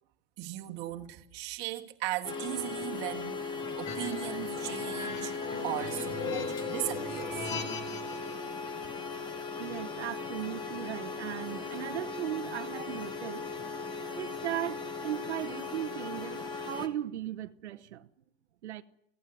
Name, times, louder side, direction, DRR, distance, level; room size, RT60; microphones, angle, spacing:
voice 1, 0.4-5.3 5.6-7.5, right 15 dB, 30° right, 1.7 m, -37 dB
sound 1, 2.2-16.9, left 4 dB, 15° left, 1.4 m, -38 dB
sound 2, 3.9-8.4, left 4 dB, 35° left, 3.5 m, -39 dB
voice 2, 9.6-13.5 14.1-18.1 18.6-18.8, right 12 dB, 80° right, 1.0 m, -37 dB
16.5 x 16.5 x 9.7 m
supercardioid pair, 155°, 34 cm